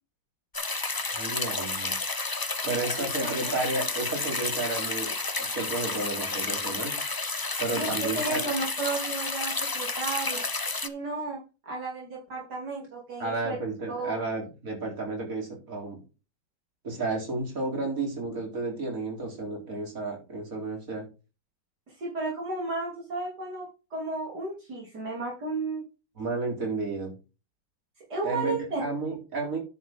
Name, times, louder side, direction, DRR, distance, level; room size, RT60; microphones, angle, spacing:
sound 1, 0.5-10.9, left 3 dB, 30° left, 0.3 m, -31 dB
voice 1, 1.1-2.0 2.6-5.1 5.5-7.0 7.6-8.4 13.2-16.0 16.8-21.1 26.2-27.1 28.2-29.6, right 3 dB, 50° right, 1 dB, 4.3 m, -32 dB
voice 2, 2.6-3.5 7.8-10.4 10.8-13.6 13.9-14.2 22.0-25.8 28.1-28.8, right 3 dB, 65° right, -3 dB, 3.8 m, -33 dB
10.0 x 7.1 x 3.7 m, 0.30 s
omnidirectional pair, 1.9 m